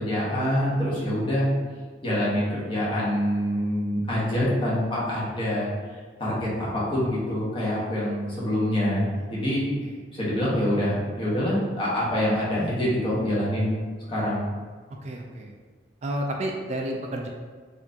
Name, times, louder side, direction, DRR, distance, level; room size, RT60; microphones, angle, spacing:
voice 1, 0.0-1.5 2.0-9.7 10.1-13.8 14.1-14.5, equal, 30° left, -7 dB, 1.1 m, -26 dB
voice 2, 15.0-15.5 16.0-17.3, right 1 dB, 40° right, 1 dB, 0.3 m, -31 dB
4.3 x 2.5 x 2.7 m, 1.5 s
head